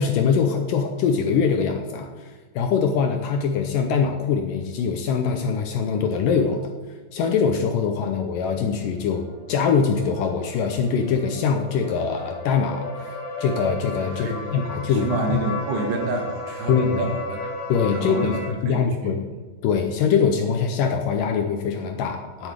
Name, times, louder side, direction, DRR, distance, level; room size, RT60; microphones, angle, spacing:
voice 1, 0.0-6.7 7.1-15.4 16.7-17.0 17.7-18.4 18.6-19.2 19.6-22.5, left 6 dB, 75° left, 5 dB, 2.0 m, -23 dB
sound 1, 9.2-18.5, left 2 dB, 55° left, 3.2 m, -34 dB
voice 2, 14.2-14.6 14.9-17.6 17.9-19.2, right 3 dB, 90° right, 2 dB, 3.8 m, -29 dB
8.3 x 8.0 x 8.2 m, 1.3 s
omnidirectional pair, 4.5 m